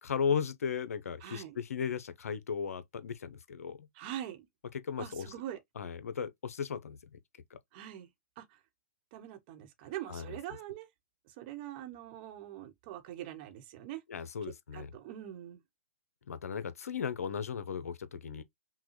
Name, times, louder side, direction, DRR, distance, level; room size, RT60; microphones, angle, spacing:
voice 1, 0.0-3.9 4.7-5.3 5.8-7.2 7.5-7.6 10.1-10.4 14.1-14.9 16.3-18.4, left 6 dB, 75° left, 0.7 m, -36 dB
voice 2, 1.2-1.6 4.0-4.4 5.0-5.6 7.7-8.1 8.4-8.5 9.1-10.9 11.4-14.0 14.7-15.6, right 12 dB, 40° right, 1.0 m, -43 dB
5.7 x 2.3 x 3.0 m
hypercardioid pair, 125°, 8 cm